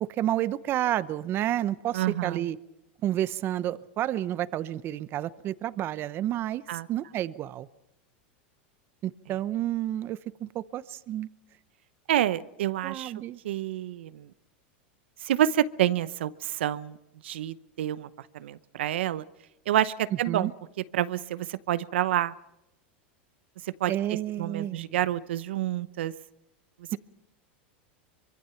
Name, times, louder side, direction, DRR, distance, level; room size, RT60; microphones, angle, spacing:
voice 1, 0.0-2.6 3.0-6.6 6.9-7.7 9.0-11.3 12.8-13.4 20.3-20.5 23.9-25.0 26.9-27.0, right 12 dB, 40° right, 16 dB, 0.9 m, -30 dB
voice 2, 1.9-2.5 6.7-6.9 12.1-13.1 13.4-14.3 15.2-17.0 17.2-19.2 19.7-20.5 20.9-22.3 23.6-23.9 24.4-26.1, right 12 dB, 80° right, 15 dB, 0.8 m, -28 dB
24.5 x 24.0 x 5.8 m, 0.89 s
supercardioid pair, 120°, 6 cm